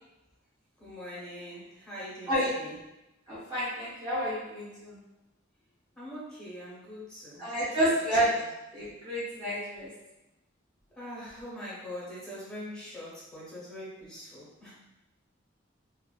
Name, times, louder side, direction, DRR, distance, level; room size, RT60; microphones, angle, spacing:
voice 1, 0.8-2.7 6.0-7.5 7.8-8.0 10.9-14.7, equal, 5° left, -9 dB, 0.9 m, -43 dB
voice 2, 3.3-5.0 7.4-8.3 8.7-9.9, equal, 20° right, -12 dB, 0.6 m, -29 dB
2.4 x 2.3 x 2.3 m, 0.97 s
head